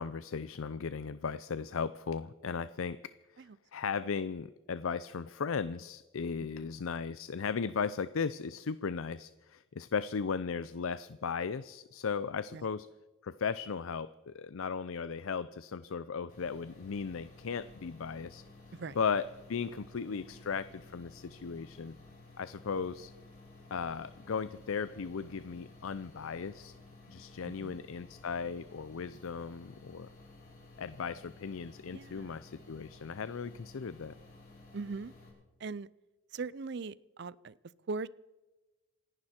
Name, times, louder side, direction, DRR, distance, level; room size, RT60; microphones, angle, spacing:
voice 1, 0.0-3.0 3.7-12.9 13.2-18.4 19.0-22.0 22.4-23.1 23.7-26.7 27.1-30.1 30.8-34.1, left 5 dB, 75° left, 14 dB, 0.5 m, -36 dB
voice 2, 6.4-6.7 12.5-12.7 18.7-19.0 27.4-27.8 31.9-32.4 34.7-35.1 35.6-35.9 36.3-37.6 37.9-38.1, right 4 dB, 55° right, 20 dB, 0.5 m, -40 dB
sound 1, 16.3-35.3, left 2 dB, 40° left, 6.1 m, -55 dB
27.5 x 11.0 x 4.4 m, 1.1 s
head